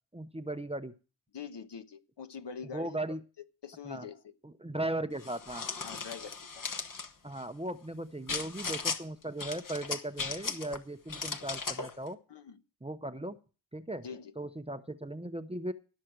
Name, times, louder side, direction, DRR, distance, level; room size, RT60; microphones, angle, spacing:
voice 1, 0.1-0.9 2.7-3.2 3.8-4.1 4.4-5.7 7.2-12.2 12.8-13.4 13.7-14.0 14.4-15.7, right 1 dB, 10° right, 9 dB, 0.7 m, -37 dB
voice 2, 1.3-3.0 3.6-4.3 5.8-6.6 12.3-12.6 14.0-14.3, left 6 dB, 60° left, 9 dB, 1.2 m, -44 dB
sound 1, 5.2-7.1 8.3-9.0 9.4-10.8 11.1-11.9, left 4 dB, 40° left, 1.2 m, -37 dB
16.5 x 6.4 x 6.1 m, 0.33 s
wide cardioid pair, 95°, 48 cm